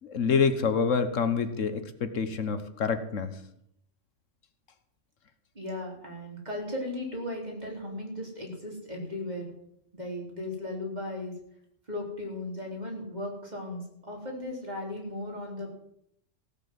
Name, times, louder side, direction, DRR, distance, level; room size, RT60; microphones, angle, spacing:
voice 1, 0.0-3.4, left 5 dB, 80° left, 10 dB, 1.5 m, -27 dB
voice 2, 5.5-9.5 9.9-11.3 11.9-15.7, left 1 dB, 35° right, -1 dB, 4.2 m, -36 dB
16.0 x 8.7 x 7.7 m, 0.74 s
omnidirectional pair, 1.3 m